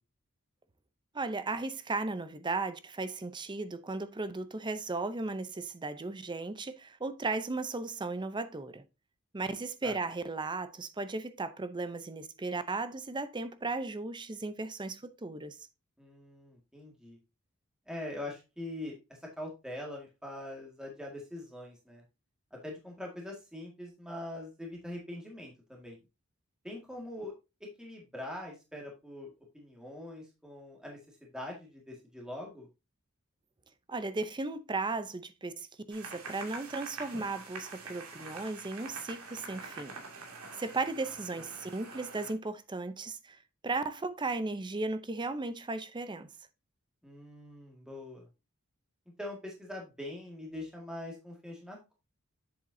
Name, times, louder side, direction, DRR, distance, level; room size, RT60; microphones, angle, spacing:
voice 1, 1.1-8.8 9.3-15.7 33.9-39.9 40.5-46.3, right 3 dB, 20° right, 0.6 m, -36 dB
voice 2, 16.0-17.2 17.9-22.0 22.5-26.0 26.6-27.3 27.8-29.3 29.5-32.7 41.3-41.5 47.0-48.3 49.2-51.9, left 1 dB, 5° right, 1.9 m, -43 dB
sound 1, 35.9-42.3, right 4 dB, 90° right, 2.4 m, -45 dB
7.8 x 7.2 x 2.7 m
head